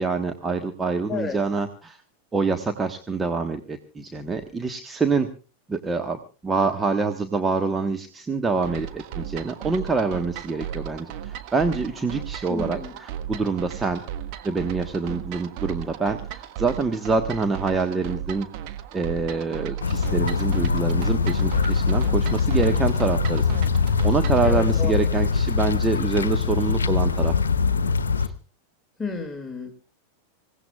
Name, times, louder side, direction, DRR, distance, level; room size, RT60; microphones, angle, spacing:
voice 1, 0.0-2.0 2.3-5.3 5.7-14.0 14.4-18.5 18.9-23.5 24.0-27.3 28.2-28.3, right 4 dB, 15° right, 5 dB, 1.3 m, -26 dB
voice 2, 1.1-1.4 12.5-12.9 24.4-25.0 29.0-29.7, left 5 dB, 10° left, 1 dB, 2.4 m, -31 dB
sound 1, 8.6-24.5, right 10 dB, 45° right, 1.4 m, -35 dB
sound 2, 19.8-28.3, left 5 dB, 70° left, 1.0 m, -22 dB
26.0 x 17.0 x 2.4 m, 0.34 s
figure-of-eight pair, 90°, 0 cm